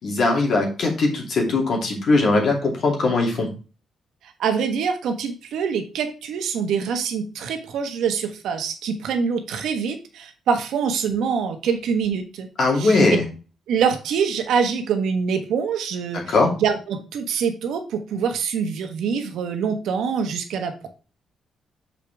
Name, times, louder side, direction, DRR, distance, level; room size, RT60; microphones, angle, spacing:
voice 1, 0.0-3.5 12.6-13.2 16.3-16.5, left 3 dB, 60° left, 0 dB, 2.7 m, -20 dB
voice 2, 4.4-12.5 12.7-13.0 13.7-16.3 16.6-20.9, right 6 dB, 80° right, 6 dB, 1.2 m, -25 dB
6.7 x 5.0 x 3.5 m, 0.35 s
cardioid pair, 110°, 0 cm